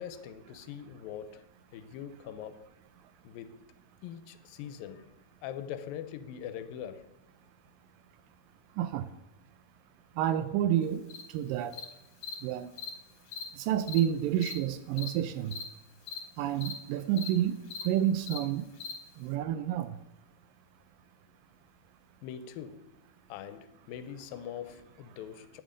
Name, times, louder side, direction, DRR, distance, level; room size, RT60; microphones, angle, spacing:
voice 1, 0.0-1.5 1.7-2.7 3.2-3.6 4.0-7.2 22.2-22.9 23.3-25.6, left 9 dB, 85° left, 2.5 m, -42 dB
voice 2, 8.8-9.1 10.2-11.0 11.3-11.8 12.4-12.7 13.6-15.6 16.4-17.6 17.8-18.7 19.2-20.0, right 11 dB, 80° right, 2.2 m, -29 dB
Cricket, 11.1-11.2 11.7-11.8 12.2-12.3 12.8-12.9 13.3-13.4 13.9-14.0 14.4-14.5 15.0-15.1 15.5-15.6 16.1-16.2 16.6-16.7 17.2-17.3 17.7-17.8 18.3-18.4 18.8-18.9, left 6 dB, 70° left, 3.4 m, -39 dB
11.0 x 8.9 x 5.1 m
omnidirectional pair, 4.1 m